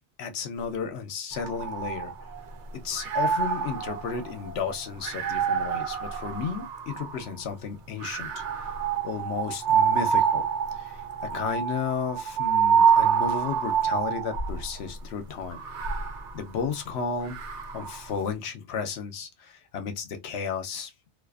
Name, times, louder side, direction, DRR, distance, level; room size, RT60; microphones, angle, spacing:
voice 1, 0.2-2.1 2.8-8.8 9.0-10.5 10.7-16.0 16.3-17.4 17.7-20.9, left 6 dB, 75° left, 0.9 m, -33 dB
sound 1, 1.3-2.5 2.9-7.3 8.0-14.7 15.4-18.0, right 7 dB, 85° right, 0.9 m, -27 dB
2.4 x 2.4 x 2.3 m
omnidirectional pair, 1.1 m